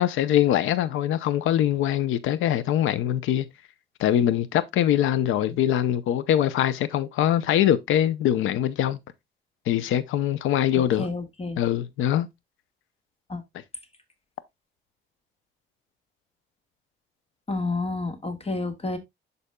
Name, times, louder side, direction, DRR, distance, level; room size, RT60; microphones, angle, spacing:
voice 1, 0.0-3.5 4.0-9.0 9.7-11.1 11.6-12.3, left 11 dB, 85° left, 0.7 m, -23 dB
voice 2, 10.7-11.6 13.3-13.4 17.5-19.0, left 3 dB, 30° left, 1.7 m, -30 dB
12.0 x 4.1 x 2.3 m
cardioid pair, 90°, 20 cm